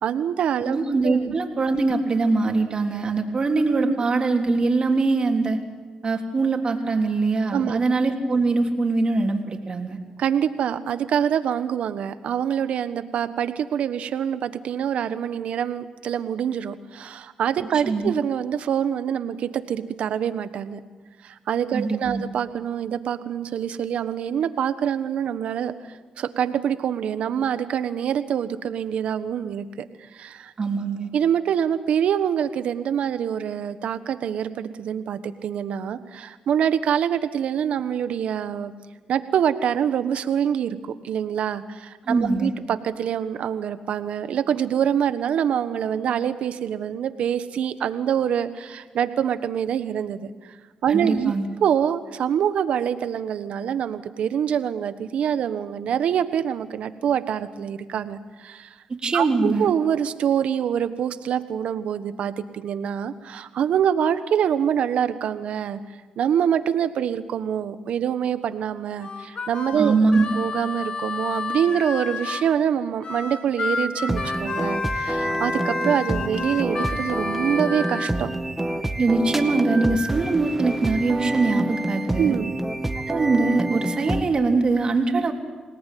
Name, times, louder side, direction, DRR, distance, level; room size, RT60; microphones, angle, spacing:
voice 1, 0.0-0.8 1.0-1.2 3.8-3.9 7.5-7.8 10.2-20.8 21.2-25.7 26.2-29.7 30.1-30.5 31.1-38.7 39.1-50.3 50.8-51.3 51.6-58.7 59.1-65.8 66.2-69.9 70.4-78.3 82.2-82.6, right 8 dB, 80° right, 11 dB, 1.3 m, -25 dB
voice 2, 0.7-5.6 6.0-10.0 17.7-18.1 21.7-22.2 30.6-31.1 42.1-42.5 50.9-51.5 58.9-59.7 69.8-70.2 79.0-82.4 83.1-85.3, right 3 dB, 45° right, 3 dB, 3.5 m, -22 dB
Harmonica, 69.0-72.5 73.0-78.1, left 4 dB, 55° left, 2.5 m, -30 dB
sound 1, 74.1-84.2, right 1 dB, 10° right, 2.1 m, -27 dB
26.5 x 18.5 x 9.4 m, 1.4 s
cardioid pair, 65°, 2 cm